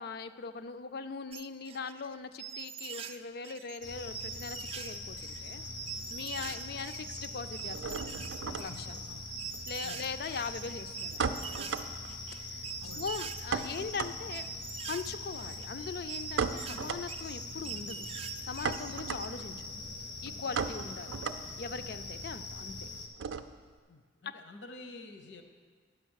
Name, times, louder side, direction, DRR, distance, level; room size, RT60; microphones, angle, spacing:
voice 1, 0.0-5.6 6.1-8.3 8.6-9.0 9.7-11.9 12.4-12.6 12.9-14.5 14.9-18.0 18.5-19.6 20.2-22.9, left 5 dB, 55° left, 11 dB, 0.4 m, -41 dB
sound 1, 1.3-3.2 3.4-19.3, right 8 dB, 30° right, 0.4 m, -44 dB
sound 2, 3.8-23.1, left 2 dB, 90° left, 1.2 m, -43 dB
sound 3, 4.1-5.6 5.8-6.5 6.8-23.8, right 5 dB, 90° right, 0.5 m, -39 dB
voice 2, 12.8-13.2 20.8-20.9 23.9-25.4, left 2 dB, 70° left, 6 dB, 0.8 m, -50 dB
10.0 x 6.4 x 6.4 m, 1.6 s
head